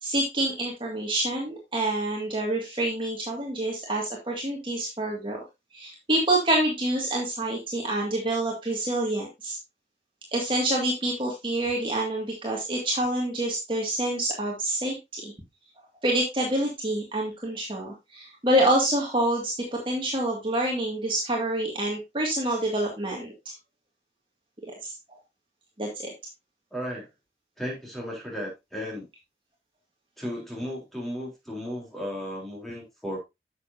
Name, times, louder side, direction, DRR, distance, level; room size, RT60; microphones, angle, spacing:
voice 1, 0.0-5.4 5.7-9.6 10.3-15.3 16.0-23.5 24.8-24.9 25.8-26.1, right 1 dB, 30° right, -1 dB, 2.1 m, -27 dB
voice 2, 26.7-27.1 27.6-29.0 30.2-33.2, equal, ahead, -2 dB, 3.5 m, -35 dB
10.0 x 7.2 x 2.7 m, 0.22 s
head